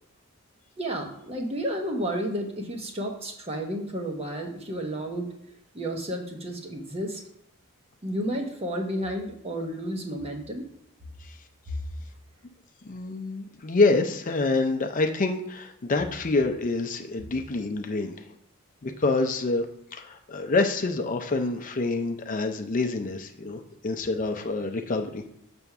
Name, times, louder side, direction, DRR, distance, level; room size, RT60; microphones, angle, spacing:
voice 1, 0.8-5.3 5.7-7.2 8.0-10.6, right 1 dB, 30° right, 2 dB, 1.0 m, -31 dB
voice 2, 12.8-18.2 18.8-19.7 19.9-25.2, left 3 dB, 40° left, 5 dB, 0.5 m, -27 dB
6.9 x 3.5 x 5.9 m, 0.75 s
head